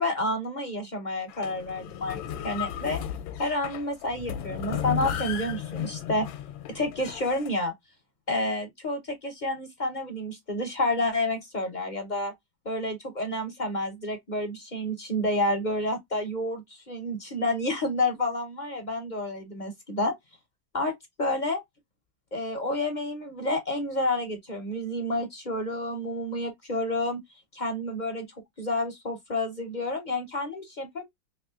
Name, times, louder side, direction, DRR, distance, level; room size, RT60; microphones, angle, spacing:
voice 1, 0.0-3.0 3.4-6.3 6.7-7.7 8.3-12.3 12.6-20.1 20.7-20.9 21.2-21.6 22.3-27.2 27.5-28.3 28.6-31.0, left 1 dB, 40° left, 0.6 m, -29 dB
sound 1, 1.3-7.5, left 10 dB, 80° left, 1.3 m, -35 dB
3.5 x 3.1 x 2.3 m
omnidirectional pair, 2.1 m